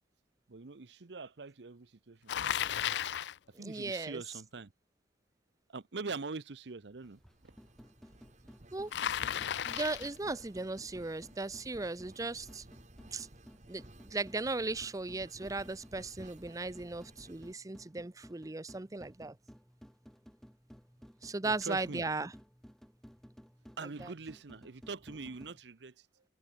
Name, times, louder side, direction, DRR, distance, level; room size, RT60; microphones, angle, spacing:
voice 1, 0.5-2.3 3.5-4.7 5.7-7.5 21.4-22.0 23.8-26.2, right 4 dB, 75° right, 0.8 m, -43 dB
Bicycle, 2.3-3.4 8.9-10.2, left 10 dB, 75° left, 0.4 m, -34 dB
voice 2, 3.5-4.2 8.7-8.9 9.6-12.6 13.1-13.3 13.7-19.4 21.2-22.3 24.0-24.1, right 3 dB, 20° right, 0.6 m, -37 dB
sound 1, 6.9-17.5, right 1 dB, 45° right, 2.7 m, -57 dB
sound 2, 7.0-25.6, equal, ahead, 2.2 m, -57 dB
head